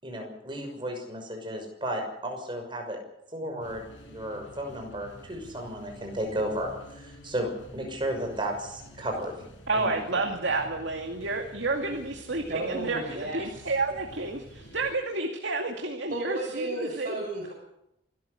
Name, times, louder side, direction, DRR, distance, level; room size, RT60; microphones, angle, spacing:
voice 1, 0.0-3.0 3.3-9.4 9.7-10.3, right 1 dB, 25° right, 3 dB, 6.2 m, -34 dB
sound 1, 3.4-14.9, equal, 75° left, 6.9 m, -49 dB
voice 2, 9.7-17.1, right 3 dB, 65° right, 2 dB, 2.4 m, -30 dB
voice 3, 12.5-13.7 16.1-17.5, right 2 dB, 45° right, -3 dB, 6.7 m, -33 dB
26.0 x 13.5 x 8.3 m, 0.83 s
head